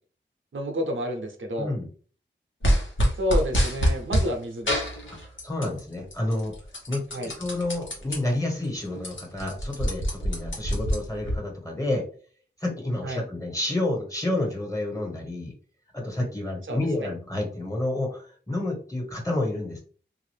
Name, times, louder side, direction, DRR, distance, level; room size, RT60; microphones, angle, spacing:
voice 1, 0.5-1.7 3.2-4.9 7.1-7.3 13.0-13.2 16.7-17.1, equal, 85° right, 3 dB, 0.7 m, -30 dB
sound 1, 2.6-4.3 4.7-5.8 6.1-8.2 8.6-8.7 8.9-11.3, equal, 80° left, 1.2 m, -25 dB
voice 2, 5.4-6.5 6.9-12.0 12.6-15.5 15.9-19.8, left 1 dB, 15° left, 0 dB, 1.4 m, -29 dB
3.6 x 2.5 x 3.3 m, 0.42 s
wide cardioid pair, 75°, 20 cm